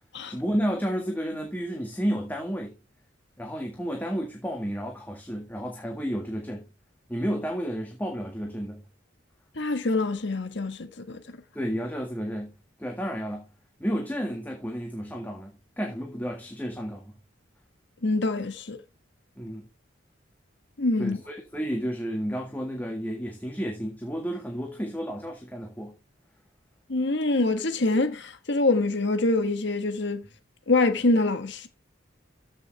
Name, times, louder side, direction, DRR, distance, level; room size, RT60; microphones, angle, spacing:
voice 1, 0.3-2.8 3.4-6.7 7.1-8.8 11.5-12.5 12.8-13.4 13.8-17.0 19.4-19.7 21.0-25.9, equal, 10° left, 1.8 m, -31 dB
voice 2, 9.6-11.2 18.0-18.8 20.8-21.2 26.9-30.3 30.7-31.7, left 2 dB, 60° left, 1.4 m, -25 dB
14.0 x 6.5 x 3.3 m
head